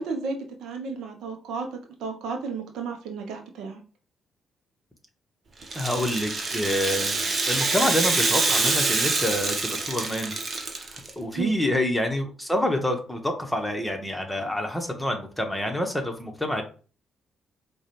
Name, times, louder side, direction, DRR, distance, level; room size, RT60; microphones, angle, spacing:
voice 1, 0.0-3.8 11.3-11.5, right 4 dB, 75° right, 4 dB, 0.6 m, -33 dB
Rattle (instrument), 5.6-11.1, right 3 dB, 50° right, 0.9 m, -26 dB
voice 2, 5.7-10.3 10.9-16.6, left 1 dB, 10° left, 3 dB, 1.1 m, -27 dB
4.6 x 2.3 x 3.0 m, 0.39 s
hypercardioid pair, 50°, 0 cm